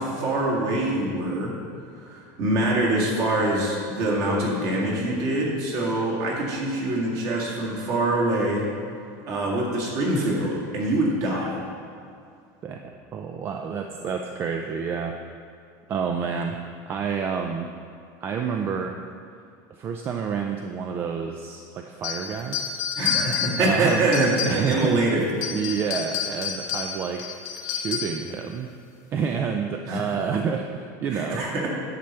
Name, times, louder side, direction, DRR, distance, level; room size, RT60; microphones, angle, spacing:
voice 1, 0.0-1.5 2.0-8.7 9.3-11.5 23.0-25.3 29.9-30.1 31.1-31.7, right 1 dB, 45° right, -3 dB, 2.0 m, -24 dB
voice 2, 13.1-15.2 15.9-16.6 16.9-17.7 18.2-19.0 19.7-22.7 23.6-24.1 24.5-27.2 27.6-28.7 29.1-31.7, right 6 dB, 25° right, 4 dB, 0.3 m, -29 dB
sound 1, 22.0-24.9 25.3-28.3, left 8 dB, 80° left, 1.3 m, -30 dB
10.5 x 6.6 x 4.4 m, 2.4 s
cardioid pair, 175°, 9 cm